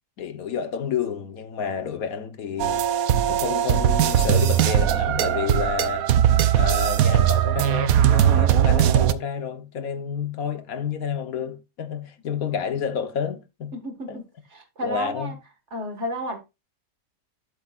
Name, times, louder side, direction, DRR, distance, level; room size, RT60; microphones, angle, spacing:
voice 1, 0.2-2.8 3.3-6.1 6.5-13.7 14.1-14.2 14.8-15.3, left 7 dB, 75° left, 1.5 m, -30 dB
sound 1, 2.6-9.1, right 10 dB, 75° right, 1.1 m, -20 dB
voice 2, 13.7-14.3 14.5-15.4 15.7-16.4, equal, 50° right, 2.0 m, -31 dB
12.5 x 7.2 x 2.4 m
omnidirectional pair, 1.5 m